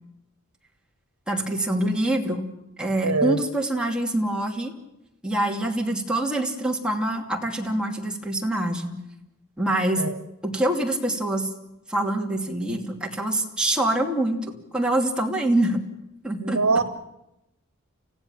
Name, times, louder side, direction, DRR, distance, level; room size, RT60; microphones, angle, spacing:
voice 1, 1.3-2.4 2.8-4.7 5.2-8.9 9.6-10.0 10.4-11.5 11.9-14.4 14.7-15.8 16.2-16.8, right 1 dB, 5° right, 0 dB, 2.7 m, -25 dB
voice 2, 3.0-3.4 10.0-10.2 16.4-16.8, right 3 dB, 85° right, 10 dB, 1.3 m, -22 dB
30.0 x 15.5 x 7.3 m, 0.92 s
head